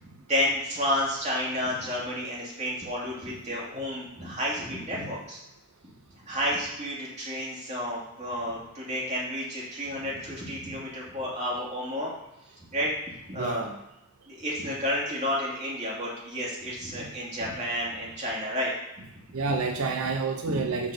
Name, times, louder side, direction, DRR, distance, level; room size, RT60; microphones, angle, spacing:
voice 1, 0.3-5.4 6.2-12.1 12.7-12.9 13.3-13.6 14.3-18.7 19.3-19.6 20.4-20.6, equal, 30° right, -5 dB, 2.5 m, -31 dB
voice 2, 13.4-13.8 15.8-15.9 19.3-20.9, right 4 dB, 80° right, 4 dB, 0.6 m, -29 dB
6.3 x 4.2 x 6.4 m, 0.92 s
head